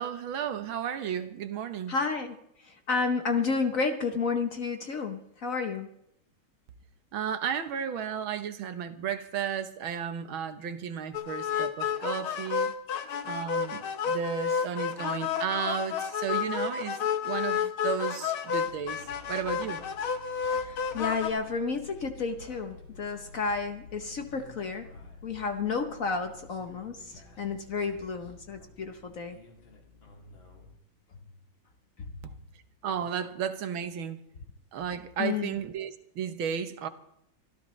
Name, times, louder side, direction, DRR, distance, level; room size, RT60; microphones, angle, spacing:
voice 1, 0.0-2.0 7.1-12.7 13.2-19.0 19.3-19.8 32.2-32.4 32.8-34.2 34.7-36.9, right 8 dB, 75° right, 1.9 m, -33 dB
voice 2, 1.9-5.9 20.4-24.9 25.2-29.4 32.0-32.1 35.2-35.6, left 4 dB, 50° left, 1.1 m, -31 dB
sound 1, 11.1-21.3, left 7 dB, 85° left, 2.0 m, -31 dB
sound 2, 18.6-30.8, left 3 dB, 70° left, 3.1 m, -51 dB
24.5 x 14.0 x 3.2 m
omnidirectional pair, 2.2 m